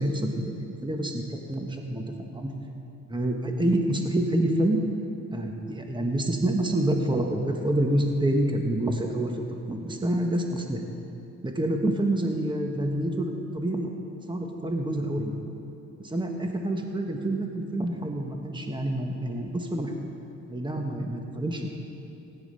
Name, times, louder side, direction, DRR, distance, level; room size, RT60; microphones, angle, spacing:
voice 1, 0.0-2.5 3.1-4.8 5.3-9.4 9.7-10.8 11.4-14.0 14.3-15.3 16.0-19.9 20.5-21.7, right 1 dB, 15° right, 2 dB, 1.4 m, -27 dB
16.5 x 9.6 x 5.6 m, 2.8 s
cardioid pair, 90°, 30 cm